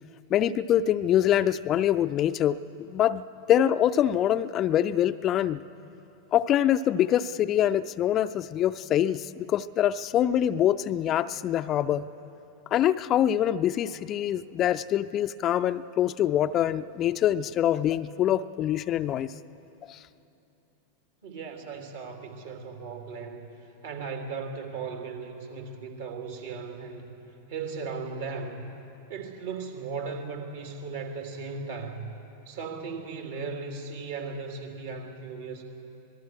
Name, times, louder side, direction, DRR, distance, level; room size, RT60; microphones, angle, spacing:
voice 1, 0.3-2.6 2.9-5.6 6.3-12.1 12.7-19.3 19.9-20.0, left 11 dB, 30° left, 12 dB, 0.5 m, -24 dB
voice 2, 21.2-27.1 27.5-28.6 29.1-32.1 32.4-35.6, right 4 dB, 60° right, 2 dB, 3.1 m, -37 dB
26.0 x 19.0 x 6.4 m, 2.9 s
figure-of-eight pair, 90°, 0 cm